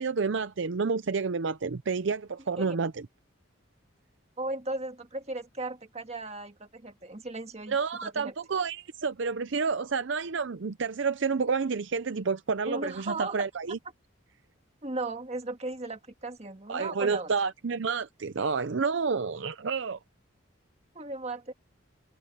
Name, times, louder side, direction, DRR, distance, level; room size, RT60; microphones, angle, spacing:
voice 1, 0.0-2.9 7.7-13.8 16.7-20.0, right 5 dB, 60° right, 0.5 m, -29 dB
voice 2, 4.4-7.8 8.0-8.3 12.7-13.5 14.8-17.3 20.9-21.5, right 2 dB, 30° right, 1.7 m, -36 dB
head